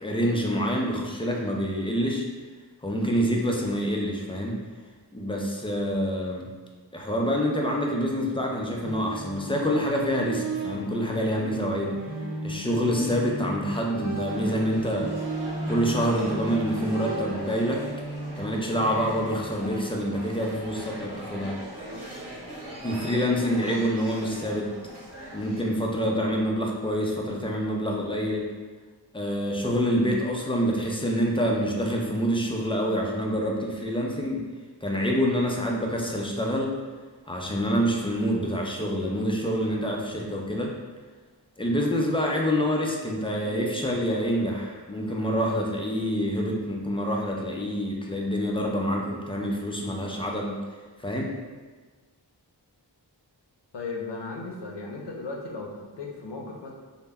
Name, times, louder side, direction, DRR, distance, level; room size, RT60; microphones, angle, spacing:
voice 1, 0.0-2.3 2.8-4.6 5.1-6.5 6.9-12.0 12.4-15.1 15.7-17.8 18.4-21.6 22.8-24.7 25.3-28.5 29.1-34.5 34.8-36.8 37.3-40.7 41.6-50.6 51.0-51.4, equal, 15° left, -1 dB, 0.3 m, -26 dB
sound 1, 8.8-19.5, right 2 dB, 50° right, 0.5 m, -35 dB
sound 2, 14.3-25.6, right 1 dB, 65° right, 1.0 m, -40 dB
voice 2, 53.7-56.7, left 3 dB, 75° left, 0 dB, 0.5 m, -36 dB
2.1 x 2.1 x 3.4 m, 1.4 s
wide cardioid pair, 55°, 42 cm